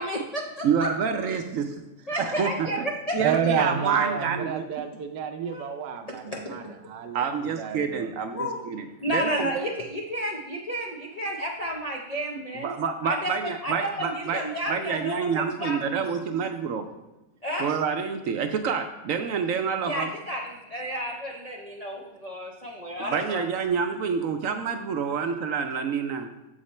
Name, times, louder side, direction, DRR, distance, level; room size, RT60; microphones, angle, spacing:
voice 1, 0.0-0.9 2.1-3.1 3.5-3.6 5.5-5.7 6.1-6.7 8.3-8.6 9.0-12.7 13.0-16.1 17.4-17.7 19.8-23.4, equal, 70° left, -1 dB, 0.3 m, -32 dB
voice 2, 0.6-1.8 2.2-2.8 3.1-4.7 7.1-9.7 12.5-14.4 14.7-16.9 17.6-20.1 23.0-26.3, right 6 dB, 70° right, 6 dB, 0.8 m, -28 dB
voice 3, 3.2-7.2 7.6-8.1, right 7 dB, 85° right, 5 dB, 1.2 m, -29 dB
7.1 x 5.0 x 4.2 m, 0.98 s
omnidirectional pair, 1.7 m